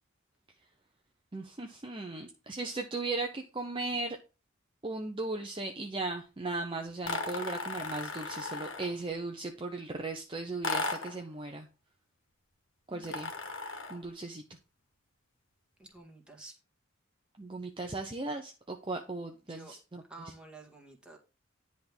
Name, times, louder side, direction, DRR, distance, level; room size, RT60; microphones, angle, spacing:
voice 1, 1.3-4.2 4.8-11.7 12.9-13.3 13.9-14.4 17.4-20.0, right 3 dB, 25° right, 3 dB, 0.7 m, -37 dB
sound 1, 7.0-9.0 10.6-11.2 13.0-14.1, left 3 dB, 70° left, 1.7 m, -36 dB
voice 2, 15.8-16.5 19.5-19.7 20.1-21.2, right 2 dB, 5° right, 0 dB, 1.8 m, -50 dB
10.5 x 3.6 x 6.0 m, 0.31 s
head